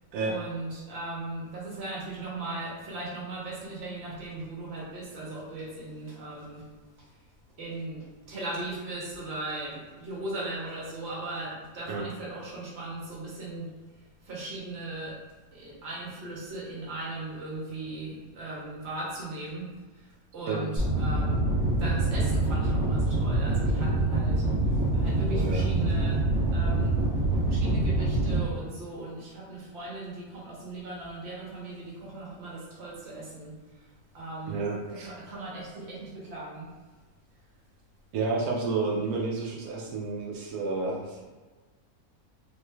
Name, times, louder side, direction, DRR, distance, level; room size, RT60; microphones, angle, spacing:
voice 1, 0.2-6.7 7.0-7.1 7.6-13.7 14.2-15.2 15.5-19.7 19.9-21.4 21.8-27.0 27.4-33.9 34.1-34.6 35.0-36.7, right 2 dB, 50° right, -5 dB, 1.2 m, -38 dB
sound 1, 20.8-28.4, right 2 dB, 15° right, 0.9 m, -25 dB
voice 2, 25.3-25.7 34.5-35.1 38.1-41.2, right 4 dB, 85° right, -2 dB, 1.1 m, -30 dB
3.3 x 3.0 x 2.3 m, 1.3 s
omnidirectional pair, 1.6 m